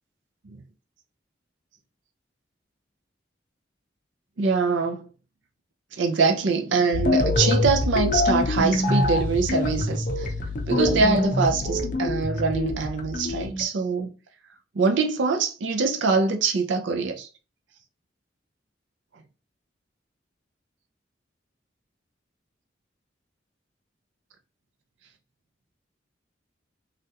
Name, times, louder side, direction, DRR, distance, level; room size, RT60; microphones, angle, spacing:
voice 1, 4.4-5.1 6.0-10.3 10.7-14.1 14.7-17.3, right 4 dB, 85° right, 0.5 m, -24 dB
sound 1, 6.9-13.6, left 2 dB, 45° left, 0.5 m, -25 dB
3.3 x 2.4 x 2.7 m
head